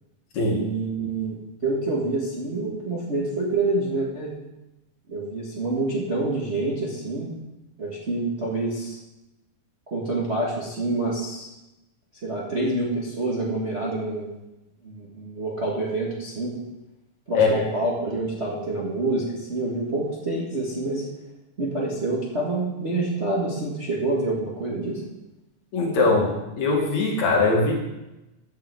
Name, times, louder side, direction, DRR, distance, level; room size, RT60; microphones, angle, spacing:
voice 1, 0.5-1.4 1.6-4.3 5.1-7.3 7.8-9.0 9.9-11.5 12.2-14.3 14.8-16.6 17.3-21.1 21.6-25.0, right 2 dB, 30° right, -5 dB, 1.4 m, -27 dB
voice 2, 17.3-17.7 25.7-26.3 26.6-27.8, left 3 dB, 65° left, -1 dB, 3.1 m, -21 dB
10.5 x 5.8 x 7.7 m, 0.97 s
omnidirectional pair, 3.6 m